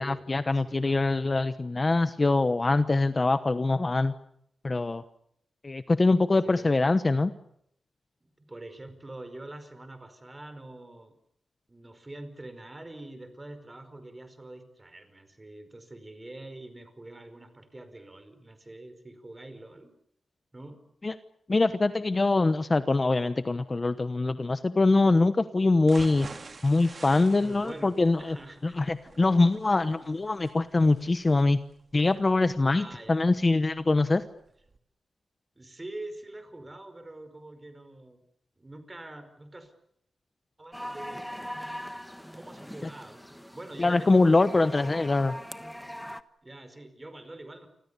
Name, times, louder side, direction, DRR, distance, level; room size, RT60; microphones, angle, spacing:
voice 1, 0.0-4.1 4.6-5.0 5.6-7.3 21.0-21.1 21.5-26.3 26.6-28.4 28.6-31.6 31.9-34.2 43.8-45.3, left 3 dB, 25° left, 11 dB, 1.0 m, -23 dB
voice 2, 0.5-1.4 6.4-6.8 8.2-11.1 11.7-19.9 20.5-20.8 27.4-28.8 32.6-33.2 35.5-38.2 38.6-39.7 40.6-41.3 42.4-44.9 46.4-47.7, right 2 dB, 20° right, 10 dB, 5.0 m, -45 dB
sound 1, 25.8-33.8 34.2-34.3 34.7-34.8, right 4 dB, 40° right, 2.3 m, -48 dB
sound 2, 40.7-46.2, equal, ahead, 1.2 m, -41 dB
29.5 x 25.5 x 6.9 m, 0.73 s
wide cardioid pair, 135°, 0 cm